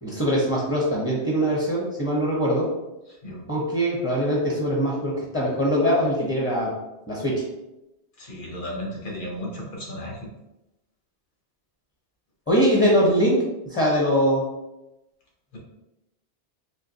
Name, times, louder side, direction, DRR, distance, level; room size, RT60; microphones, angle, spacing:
voice 1, 0.0-2.7 3.5-6.8 7.1-7.4 12.5-14.5, equal, 15° left, -4 dB, 0.6 m, -22 dB
voice 2, 8.2-10.2 15.5-15.6, equal, 50° left, -2 dB, 0.9 m, -34 dB
3.7 x 2.7 x 2.8 m, 0.94 s
omnidirectional pair, 1.1 m